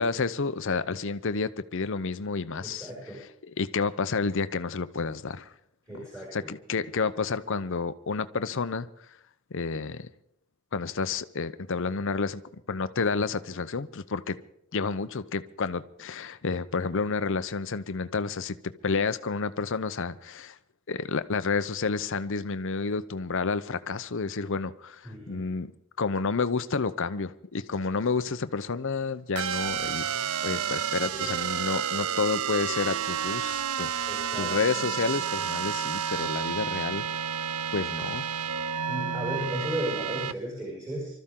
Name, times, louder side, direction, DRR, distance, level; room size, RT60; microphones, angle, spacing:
voice 1, 0.0-2.9 3.6-5.5 5.9-6.1 6.3-8.9 9.5-10.1 10.7-12.4 12.7-14.4 14.7-20.6 20.9-25.7 26.0-30.1 30.4-33.9 34.3-37.0 37.7-38.3, left 4 dB, 55° left, 0.7 m, -30 dB
voice 2, 2.6-3.2 5.9-6.5 25.0-25.5 30.9-31.3 34.0-34.5 38.9-41.1, equal, 15° right, 5.8 m, -35 dB
sound 1, 29.4-40.3, right 8 dB, 70° right, 0.5 m, -30 dB
25.0 x 13.5 x 3.8 m
head